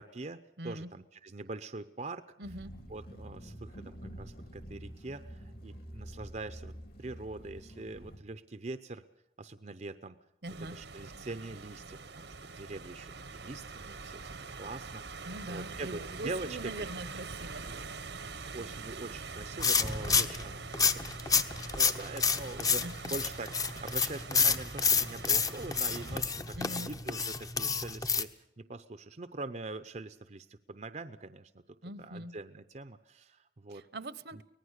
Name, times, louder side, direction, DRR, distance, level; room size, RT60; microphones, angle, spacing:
voice 1, 0.0-2.2 2.9-6.7 7.0-9.0 9.4-10.2 10.6-17.0 18.5-20.6 21.6-31.5 32.0-33.8 34.3-34.4, right 2 dB, 40° right, 11 dB, 0.7 m, -43 dB
voice 2, 0.6-0.9 2.4-2.8 10.4-10.8 15.3-17.7 22.8-23.2 26.6-26.9 31.8-32.3 33.7-34.4, right 1 dB, 70° right, 15 dB, 1.0 m, -42 dB
sound 1, 2.4-8.2, equal, 55° left, 3.3 m, -47 dB
sound 2, 10.5-26.2, right 4 dB, 90° right, 1.4 m, -44 dB
sound 3, 19.6-28.2, left 5 dB, 20° left, 0.8 m, -29 dB
24.0 x 19.0 x 6.6 m, 0.84 s
head